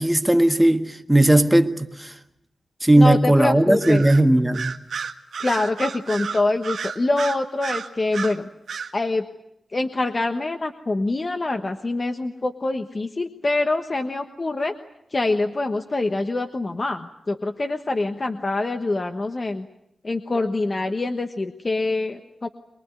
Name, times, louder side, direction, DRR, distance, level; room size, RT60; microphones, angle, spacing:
voice 1, 0.0-2.1 2.8-4.7, right 1 dB, 5° right, 1.5 m, -17 dB
voice 2, 3.0-4.0 5.4-8.5 8.9-9.3 9.7-14.7 15.1-19.7 20.0-22.5, left 2 dB, 30° left, 1.2 m, -25 dB
Bird vocalization bird call bird song, 3.8-4.2 4.5-8.4 8.7-8.9, right 6 dB, 85° right, 1.6 m, -31 dB
23.5 x 22.0 x 9.5 m
wide cardioid pair, 130°, 0 cm